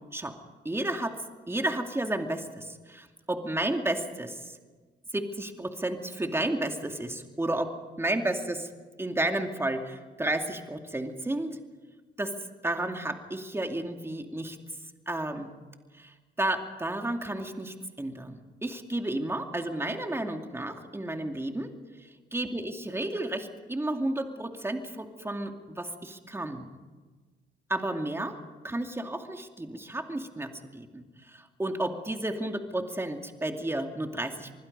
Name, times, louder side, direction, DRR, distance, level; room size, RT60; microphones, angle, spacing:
voice 1, 0.6-1.1 1.5-4.6 5.1-7.7 8.0-8.7 9.0-11.6 12.2-12.3 12.6-14.6 15.1-15.5 16.0-21.7 22.3-26.7 27.7-28.4 28.6-34.6, right 1 dB, 10° right, 4 dB, 2.4 m, -32 dB
26.5 x 20.5 x 5.4 m, 1.4 s
cardioid pair, 90°, 20 cm